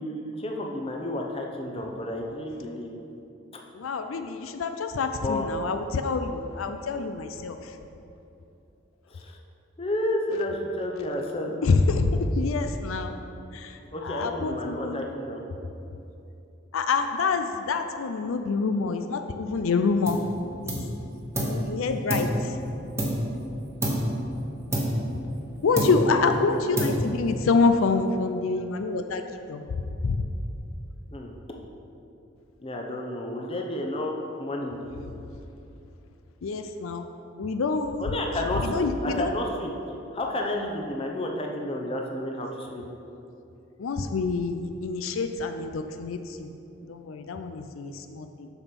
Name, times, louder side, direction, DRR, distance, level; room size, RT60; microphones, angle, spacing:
voice 1, 0.0-2.9 5.1-5.5 9.1-9.4 9.8-11.5 13.9-15.4 26.2-26.6 31.1-31.3 32.6-34.9 38.0-39.7 40.1-42.9, left 1 dB, 25° left, 1 dB, 0.7 m, -31 dB
voice 2, 3.7-7.6 11.6-13.1 13.5-15.0 16.7-20.2 20.6-20.8 21.4-22.5 25.6-29.2 29.5-29.7 30.0-30.2 36.4-37.1 37.4-38.1 38.6-39.3 43.8-46.5 46.9-48.5, left 4 dB, 80° left, 7 dB, 0.4 m, -26 dB
sound 1, 20.1-20.3 20.7-21.7 22.1-23.4 23.8-24.2 24.7-25.5 25.8-26.3 26.8-27.3, equal, 15° right, 1.0 m, -28 dB
7.0 x 6.1 x 5.3 m, 2.8 s
head